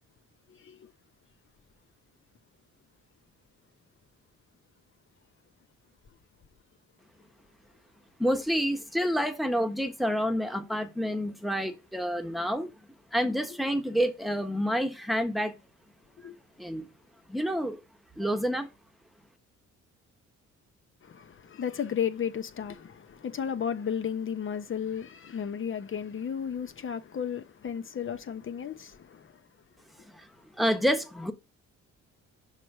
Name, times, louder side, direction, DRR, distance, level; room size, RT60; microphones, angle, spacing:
voice 1, 0.5-0.9 13.5-13.6 16.2-16.4 21.0-29.4, left 8 dB, 40° left, 0.9 m, -34 dB
voice 2, 8.2-12.7 13.1-15.5 16.6-16.9 17.3-17.8 18.2-18.7 30.2-30.3 30.6-31.3, equal, ahead, 1.2 m, -28 dB
6.4 x 3.2 x 5.4 m
cardioid pair, 90°, 30 cm